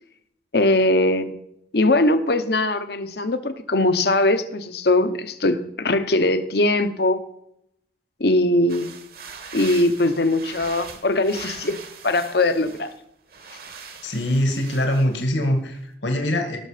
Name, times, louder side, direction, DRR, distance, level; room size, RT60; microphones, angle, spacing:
voice 1, 0.5-1.3 1.7-7.2 8.2-8.9 9.5-12.9, left 2 dB, 55° left, 10 dB, 1.0 m, -21 dB
sound 1, 8.7-13.0 13.3-15.5, right 5 dB, 55° right, 1.6 m, -41 dB
voice 2, 14.0-16.6, left 1 dB, 70° left, 4 dB, 2.0 m, -23 dB
18.0 x 6.5 x 5.0 m, 0.76 s
head